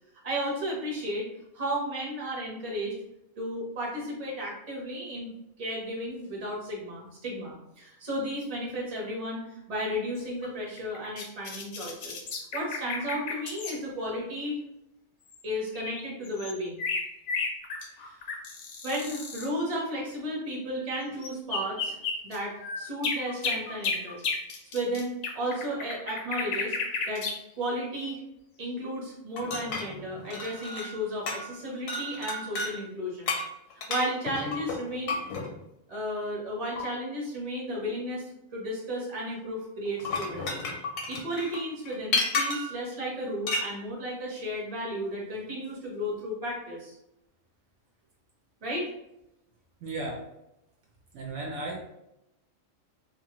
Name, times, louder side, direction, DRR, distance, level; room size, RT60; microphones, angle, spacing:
voice 1, 0.2-1.3 1.5-2.9 3.4-5.3 5.6-12.2 12.5-14.6 15.4-16.8 18.0-18.2 18.8-22.0 22.2-24.2 24.7-26.8 27.1-27.2 27.6-28.2 28.6-33.3 33.7-35.2 35.9-38.2 38.5-40.5 41.1-46.9 48.6-48.9, equal, 30° right, -3 dB, 0.9 m, -33 dB
sound 1, 10.2-13.8 15.3-15.4 15.7-19.5 21.2-27.4, left 4 dB, 65° left, 0.7 m, -33 dB
sound 2, 29.4-31.0 31.3-31.6 31.9-32.8 33.3-35.5 36.8-36.9 39.9-42.8 43.5-43.7, left 3 dB, 90° left, 1.1 m, -32 dB
voice 2, 49.8-50.2 51.1-51.8, right 2 dB, 70° right, -2 dB, 0.9 m, -35 dB
2.8 x 2.4 x 2.9 m, 0.87 s
omnidirectional pair, 1.4 m